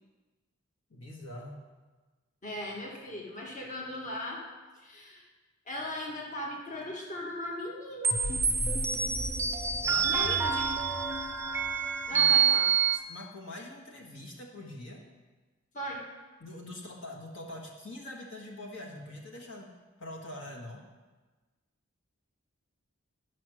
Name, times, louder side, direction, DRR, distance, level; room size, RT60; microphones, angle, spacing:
voice 1, 0.9-1.6 9.9-10.5 12.1-12.6 12.9-15.0 16.4-19.7 20.0-20.8, left 1 dB, 65° left, -1 dB, 1.6 m, -43 dB
voice 2, 2.4-4.4 4.7-5.2 5.7-8.3 10.0-10.7 12.1-12.7 15.7-16.0, left 1 dB, 35° left, -2 dB, 1.5 m, -38 dB
sound 1, 8.0-13.0, right 6 dB, 10° right, 0.5 m, -27 dB
11.5 x 6.2 x 6.2 m, 1.3 s
head